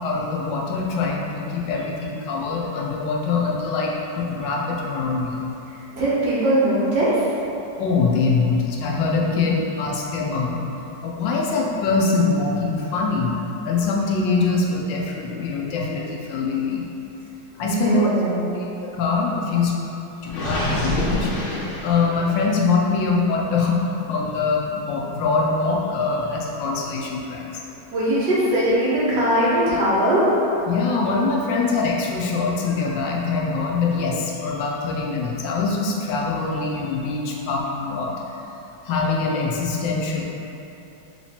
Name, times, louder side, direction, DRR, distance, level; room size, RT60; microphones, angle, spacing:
voice 1, 0.0-5.4 7.8-10.6 11.0-16.8 17.6-18.1 18.5-19.8 20.2-21.3 21.6-27.5 30.7-38.4 38.8-40.2, left 4 dB, 90° left, -2 dB, 1.4 m, -23 dB
voice 2, 5.9-7.1 17.6-18.6 27.9-30.3, right 1 dB, 70° right, -8 dB, 1.7 m, -20 dB
Gurgling, 20.3-22.4, left 1 dB, 65° left, 1.6 m, -26 dB
4.1 x 3.0 x 4.2 m, 2.9 s
omnidirectional pair, 1.9 m